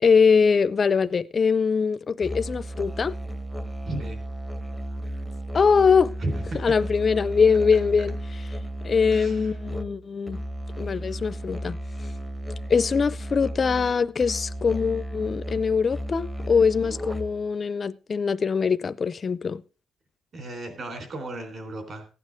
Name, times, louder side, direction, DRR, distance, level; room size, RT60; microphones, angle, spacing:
voice 1, 0.0-3.2 5.5-6.1 6.6-8.2 8.8-10.4 10.8-11.8 12.7-19.6, left 5 dB, 30° left, 0.5 m, -22 dB
Musical instrument, 2.2-17.5, right 1 dB, 5° right, 0.8 m, -34 dB
voice 2, 3.8-4.2 6.2-6.7 9.1-9.5 20.3-22.1, right 2 dB, 40° right, 3.8 m, -34 dB
16.0 x 9.6 x 3.5 m
cardioid pair, 175°, 0 cm